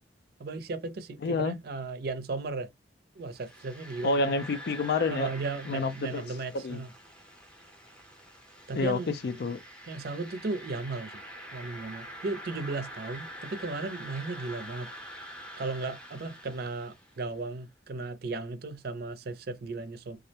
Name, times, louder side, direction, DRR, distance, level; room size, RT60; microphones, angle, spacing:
voice 1, 0.4-2.7 3.2-4.3 5.1-6.9 8.7-9.1 9.9-11.2 11.5-14.9 15.6-20.2, right 3 dB, 60° right, 0.5 m, -35 dB
voice 2, 1.2-1.6 4.0-5.3 5.7-6.2 6.5-6.8 8.7-9.6, left 3 dB, 65° left, 0.4 m, -28 dB
sound 1, 3.3-17.3, equal, 5° left, 0.6 m, -46 dB
2.3 x 2.1 x 2.7 m
head